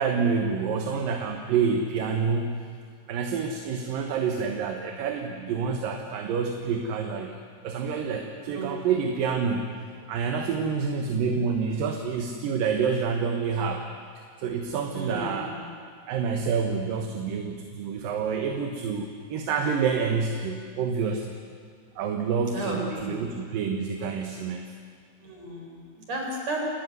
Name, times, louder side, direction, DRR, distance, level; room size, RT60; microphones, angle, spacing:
voice 1, 0.0-2.5 3.1-7.3 7.6-9.7 10.1-13.8 14.4-15.5 16.1-21.4 22.0-24.6, right 6 dB, 65° right, 3 dB, 2.7 m, -28 dB
voice 2, 8.5-9.1 14.9-15.7 22.4-23.2 25.2-26.6, right 1 dB, 40° right, 0 dB, 5.7 m, -34 dB
28.5 x 14.0 x 9.5 m, 2.1 s
omnidirectional pair, 4.7 m